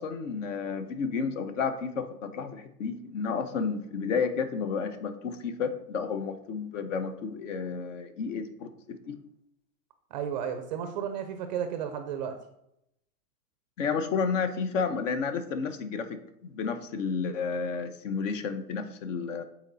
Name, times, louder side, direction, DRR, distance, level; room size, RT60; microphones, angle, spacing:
voice 1, 0.0-8.7 9.1-9.2 13.8-19.4, left 5 dB, 50° left, 10 dB, 0.9 m, -31 dB
voice 2, 10.1-12.4, right 8 dB, 30° right, 7 dB, 0.5 m, -33 dB
7.9 x 4.2 x 4.0 m, 0.79 s
hypercardioid pair, 145°, 47 cm